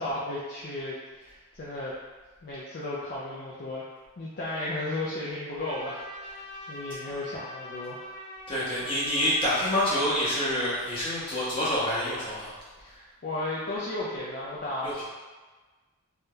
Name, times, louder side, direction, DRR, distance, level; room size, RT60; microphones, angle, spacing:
voice 1, 0.0-1.9 2.4-3.8 4.2-6.4 6.7-8.1 12.8-15.1, left 2 dB, 45° left, -7 dB, 0.4 m, -34 dB
Trumpet, 5.6-11.0, left 1 dB, 85° left, 1.0 m, -43 dB
voice 2, 8.5-12.5 14.8-15.1, equal, 25° left, -11 dB, 1.2 m, -27 dB
3.4 x 2.7 x 2.2 m, 1.3 s
head